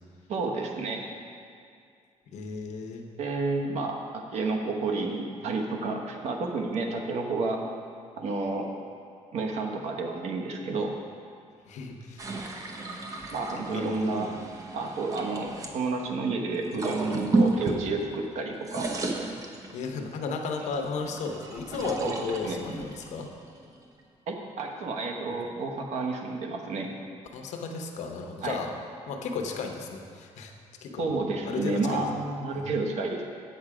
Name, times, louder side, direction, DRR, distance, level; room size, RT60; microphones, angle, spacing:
voice 1, 0.3-1.0 3.2-7.6 8.2-8.7 9.3-10.9 13.3-14.3 14.7-18.9 22.0-22.6 24.3-26.9 28.4-28.6 31.0-33.2, right 3 dB, 65° right, 2 dB, 1.1 m, -30 dB
voice 2, 2.3-3.1 11.7-12.4 13.7-14.3 19.7-23.3 27.3-28.7 29.1-30.5 30.8-31.2 31.4-32.0 32.5-32.7, left 4 dB, 75° left, 3 dB, 0.9 m, -34 dB
sound 1, 12.2-15.7 16.6-18.3 18.5-20.0 20.6-24.0, right 2 dB, 30° right, 0.8 m, -32 dB
8.0 x 7.5 x 4.9 m, 2.3 s
cardioid pair, 155°, 12 cm